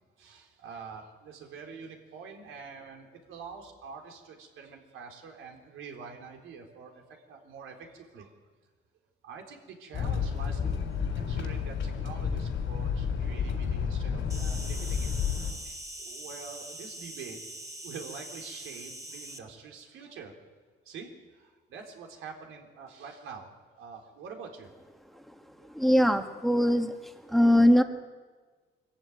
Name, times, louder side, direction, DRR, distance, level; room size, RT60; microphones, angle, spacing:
voice 1, 0.2-8.3 9.2-10.8 11.2-15.1 15.6-17.4 17.8-20.3 20.8-23.5 23.8-24.7 25.1-25.2 25.6-25.8, right 5 dB, 85° right, 2 dB, 3.9 m, -46 dB
sound 1, 9.9-15.5, left 6 dB, 70° left, 3.7 m, -31 dB
Insect, 14.3-19.4, right 1 dB, 15° right, 2.7 m, -43 dB
voice 2, 25.6-27.8, equal, ahead, 6 dB, 1.6 m, -22 dB
22.5 x 14.5 x 9.5 m, 1.4 s
cardioid pair, 90°, 20 cm